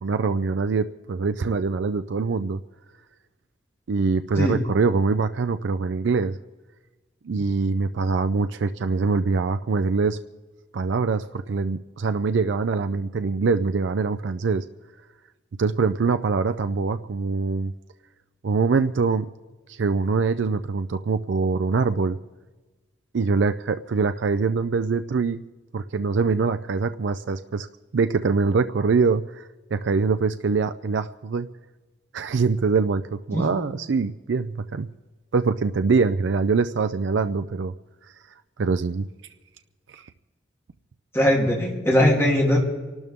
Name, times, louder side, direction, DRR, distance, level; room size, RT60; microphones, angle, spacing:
voice 1, 0.0-2.6 3.9-6.4 7.2-10.2 10.7-14.6 15.6-17.7 18.4-19.2 19.7-22.2 23.1-25.4 25.7-27.7 27.9-31.5 32.1-34.9 35.3-37.7 38.6-39.1 39.9-40.1, right 4 dB, 75° right, 10 dB, 0.4 m, -23 dB
voice 2, 41.1-42.6, left 1 dB, 15° left, -3 dB, 3.2 m, -20 dB
28.0 x 12.5 x 3.6 m, 1.2 s
head